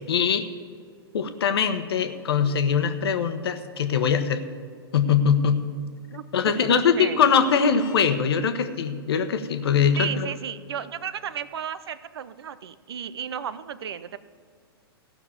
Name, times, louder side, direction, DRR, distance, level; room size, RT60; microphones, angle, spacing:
voice 1, 0.1-0.4 1.1-4.4 4.9-5.7 6.3-10.3, left 7 dB, 75° left, 9 dB, 1.0 m, -22 dB
voice 2, 6.1-7.2 10.0-14.2, right 8 dB, 75° right, 15 dB, 0.6 m, -34 dB
Vehicle horn car horn honking, 7.4-8.1, left 7 dB, 30° left, 1.6 m, -45 dB
15.5 x 6.0 x 7.1 m, 2.2 s
hypercardioid pair, 120°, 13 cm